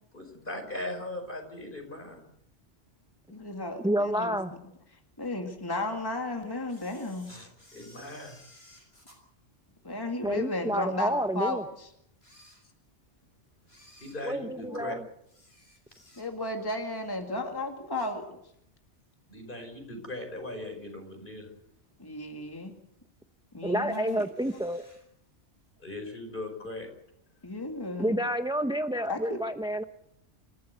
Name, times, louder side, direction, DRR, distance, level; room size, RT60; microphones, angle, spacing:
voice 1, 0.1-2.2 7.3-8.4 14.0-15.0 19.3-21.5 25.8-26.9, left 2 dB, 45° left, 5 dB, 5.2 m, -39 dB
voice 2, 3.3-4.4 4.9-7.3 9.8-11.9 14.7-15.0 16.2-18.2 22.0-22.7 23.5-24.2 27.4-28.1 29.1-29.4, left 2 dB, 20° left, 3 dB, 2.1 m, -34 dB
voice 3, 3.8-4.5 10.2-11.6 14.2-15.0 23.6-24.8 28.0-29.8, right 1 dB, 5° right, 8 dB, 0.8 m, -29 dB
Camera, 6.7-10.3 10.8-10.9 11.6-11.7 12.1-13.1 13.6-16.6 17.0-17.3 17.6-18.7 19.0-19.1 20.0-20.1 20.7-21.1 21.5-21.6 21.8-21.9 22.1-22.2 23.0-23.5 23.9-25.1 25.3-25.4 25.7-25.8, left 1 dB, 60° left, 6.7 m, -57 dB
27.5 x 15.0 x 8.1 m, 0.77 s
omnidirectional pair, 1.2 m